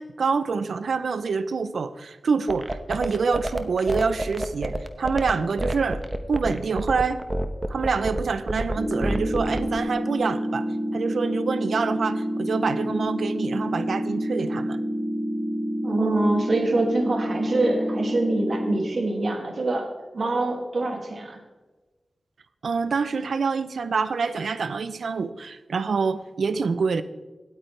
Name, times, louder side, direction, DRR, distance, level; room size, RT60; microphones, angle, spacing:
voice 1, 0.0-6.0 6.3-7.2 7.7-10.7 10.9-14.8 22.6-27.0, right 5 dB, 90° right, 13 dB, 0.6 m, -26 dB
sound 1, 2.5-9.8, right 1 dB, 20° right, 1.1 m, -27 dB
sound 2, 8.8-18.8, equal, 40° right, 3.6 m, -28 dB
voice 2, 15.8-19.9 20.1-21.4, right 2 dB, 65° right, 2 dB, 2.2 m, -25 dB
17.5 x 9.0 x 3.3 m, 1.2 s
cardioid pair, 55°, 0 cm